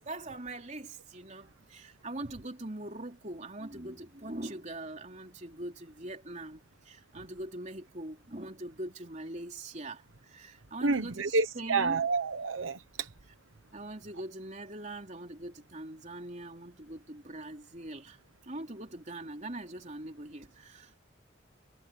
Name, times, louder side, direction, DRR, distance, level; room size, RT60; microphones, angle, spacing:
voice 1, 0.0-12.1 13.7-18.2 18.4-21.0, right 1 dB, 35° right, 3.7 m, -42 dB
voice 2, 10.8-13.1, right 4 dB, 75° right, 1.0 m, -29 dB
head